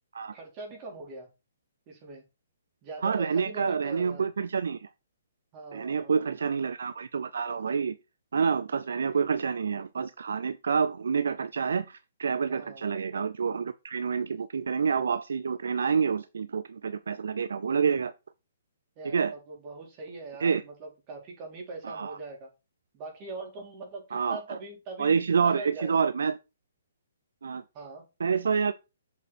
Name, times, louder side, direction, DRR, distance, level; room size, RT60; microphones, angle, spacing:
voice 1, 0.3-1.3 1.9-2.2 2.8-4.2 5.5-6.3 12.5-12.9 19.0-22.5 22.9-26.0 27.7-28.0, right 3 dB, 30° right, 4.3 m, -42 dB
voice 2, 3.0-4.9 5.7-8.0 8.3-18.1 19.0-19.3 20.4-20.6 21.8-22.2 24.1-24.6 25.0-26.4 27.4-27.6 28.2-28.7, right 6 dB, 65° right, 0.6 m, -28 dB
8.3 x 6.5 x 4.5 m
figure-of-eight pair, 130°, 0 cm